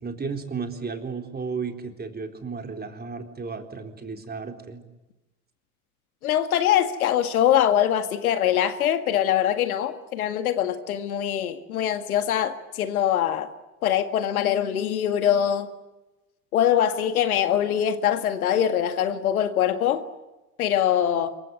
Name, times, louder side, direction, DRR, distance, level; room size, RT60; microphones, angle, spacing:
voice 1, 0.0-4.8, right 5 dB, 20° right, 4.0 m, -33 dB
voice 2, 6.2-13.5 13.8-15.7 16.5-20.0 20.6-21.3, left 10 dB, 75° left, 2.0 m, -23 dB
27.0 x 23.5 x 7.9 m
hypercardioid pair, 75°, 43 cm